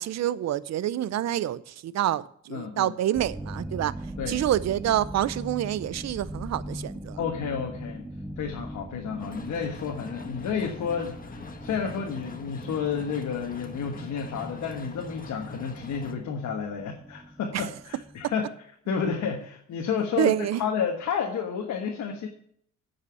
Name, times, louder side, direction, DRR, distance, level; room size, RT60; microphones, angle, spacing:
voice 1, 0.0-3.9 4.3-7.2 17.5-17.7 18.2-18.3 20.2-20.6, right 12 dB, 60° right, 0.6 m, -27 dB
voice 2, 2.5-2.9 4.2-4.4 7.2-8.1 8.4-18.5 18.9-22.3, left 6 dB, 70° left, 1.4 m, -31 dB
sound 1, 3.1-18.3, right 1 dB, 5° right, 0.6 m, -41 dB
sound 2, 9.2-16.1, left 3 dB, 30° left, 1.4 m, -43 dB
9.4 x 5.7 x 7.0 m
cardioid pair, 90°, 30 cm